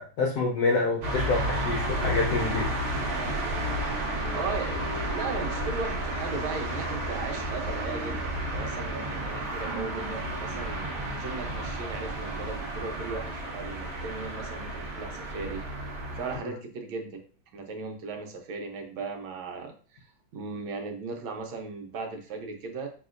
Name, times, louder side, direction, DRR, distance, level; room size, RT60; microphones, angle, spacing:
voice 1, 0.0-2.7, left 3 dB, 70° left, -2 dB, 0.9 m, -27 dB
sound 1, 1.0-16.4, right 1 dB, 50° right, 1.4 m, -32 dB
voice 2, 4.3-15.6 16.1-17.1 17.5-20.1 20.3-22.9, right 4 dB, 75° right, 3 dB, 1.5 m, -37 dB
5.9 x 2.8 x 2.4 m, 0.40 s
omnidirectional pair, 2.3 m